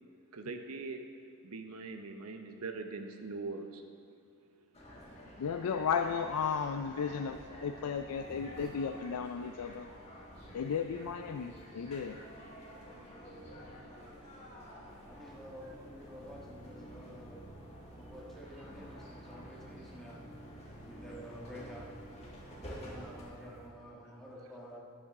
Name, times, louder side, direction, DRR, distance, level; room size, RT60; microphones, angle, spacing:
voice 1, 0.3-1.0 1.4-3.8, right 3 dB, 80° right, 6 dB, 0.8 m, -41 dB
sound 1, 4.7-23.2, equal, 30° left, 1.9 m, -50 dB
voice 2, 5.4-9.9 10.5-12.2, left 6 dB, 90° left, 7 dB, 0.4 m, -34 dB
sound 2, 14.9-23.7, right 1 dB, 55° left, 1.7 m, -54 dB
voice 3, 15.1-17.4 18.0-20.2 20.8-21.9 22.6-24.8, equal, ahead, -5 dB, 1.4 m, -49 dB
12.0 x 9.9 x 3.6 m, 2.5 s
head